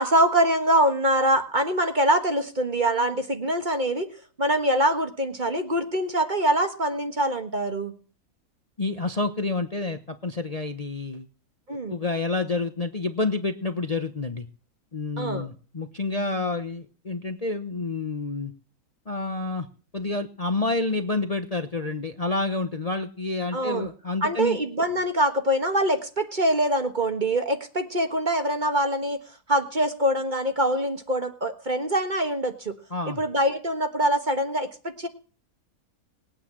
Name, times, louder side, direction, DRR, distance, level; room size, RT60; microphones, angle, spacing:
voice 1, 0.0-4.1 4.4-7.9 11.7-11.9 15.2-15.5 23.5-23.9 24.2-29.2 29.5-32.7 33.2-35.1, right 1 dB, 30° right, 6 dB, 1.6 m, -24 dB
voice 2, 8.8-11.3 11.9-14.5 14.9-18.5 19.1-19.7 19.9-24.6 32.9-33.2, left 3 dB, 30° left, 7 dB, 1.0 m, -28 dB
20.0 x 9.0 x 7.5 m, 0.39 s
omnidirectional pair, 1.6 m